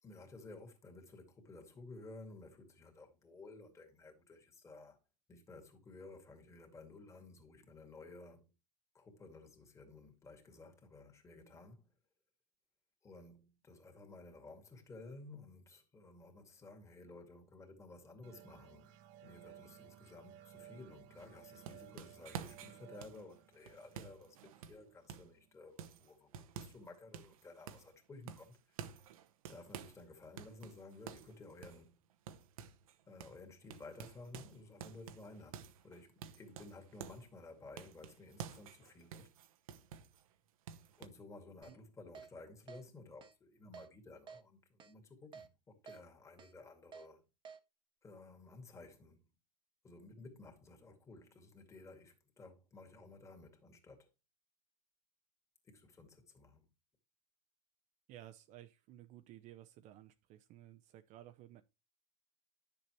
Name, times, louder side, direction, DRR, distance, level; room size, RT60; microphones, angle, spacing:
voice 1, 0.0-5.0 5.3-8.5 8.9-11.9 13.0-18.9 19.2-29.0 29.5-32.0 33.1-39.3 41.0-47.3 48.0-49.3 49.8-54.1 55.6-56.7, left 2 dB, 15° left, 2.2 m, -55 dB
sound 1, 18.2-25.5, right 11 dB, 65° right, 1.1 m, -59 dB
sound 2, 21.2-25.4 25.8-26.9 27.1-28.0 28.3-30.0 30.4-32.9 33.2-33.4 33.7-37.3 37.8-40.2 40.7-41.1, right 8 dB, 85° right, 1.0 m, -50 dB
Keyboard (musical), 41.6-41.7 42.1-42.3 42.7-42.8 43.2-43.3 43.7-43.9 44.3-44.4 44.8-44.9 45.3-45.5 45.9-46.0 46.4-46.5 46.9-47.1 47.4-47.6, right 6 dB, 25° right, 1.1 m, -52 dB
voice 2, 58.1-61.6, right 13 dB, 45° right, 0.7 m, -55 dB
10.0 x 6.9 x 3.1 m
supercardioid pair, 125°, 18 cm